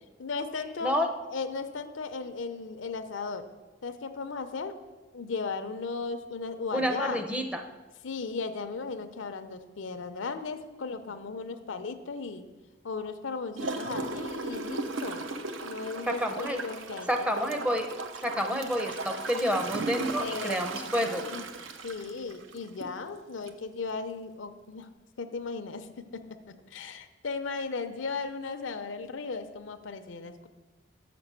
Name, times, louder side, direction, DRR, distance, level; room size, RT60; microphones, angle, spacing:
voice 1, 0.2-0.9 1.3-3.4 3.8-4.8 5.1-7.2 8.0-12.4 12.8-15.3 15.6-17.3 20.2-21.4 21.8-24.9 25.2-30.5, left 4 dB, 75° left, 9 dB, 0.6 m, -36 dB
voice 2, 6.7-7.6 16.0-16.6 17.1-17.9 18.2-21.3, equal, 5° right, 4 dB, 0.5 m, -29 dB
Gurgling / Toilet flush, 13.6-23.0 23.5-23.6, right 3 dB, 80° right, 0.6 m, -36 dB
6.7 x 6.0 x 6.6 m, 1.3 s
head